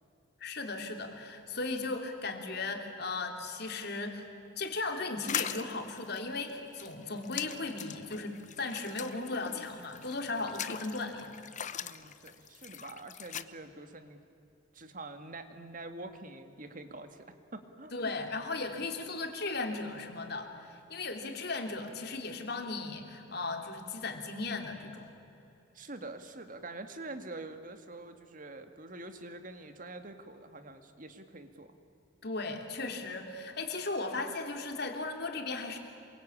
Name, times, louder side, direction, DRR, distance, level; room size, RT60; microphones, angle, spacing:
voice 1, 0.4-4.3 4.6-11.3 17.9-25.1 32.2-35.8, left 3 dB, 55° left, 4 dB, 3.1 m, -36 dB
sound 1, 5.2-13.4, left 9 dB, 40° left, 0.8 m, -41 dB
voice 2, 11.8-14.2 14.7-18.1 25.7-31.7, right 2 dB, 45° right, 8 dB, 2.1 m, -46 dB
27.5 x 23.5 x 8.7 m, 2.9 s
head